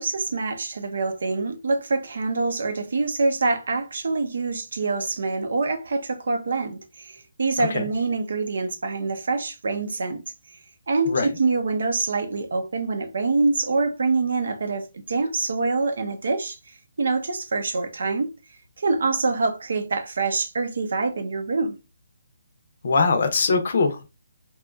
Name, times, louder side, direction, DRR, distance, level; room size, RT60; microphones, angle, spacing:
voice 1, 0.0-10.2 10.5-10.6 10.9-18.3 18.8-21.8, right 3 dB, 70° right, 0.5 m, -25 dB
voice 2, 22.8-24.0, left 4 dB, 60° left, 0.6 m, -21 dB
2.8 x 2.3 x 2.3 m
hypercardioid pair, 165°, 0 cm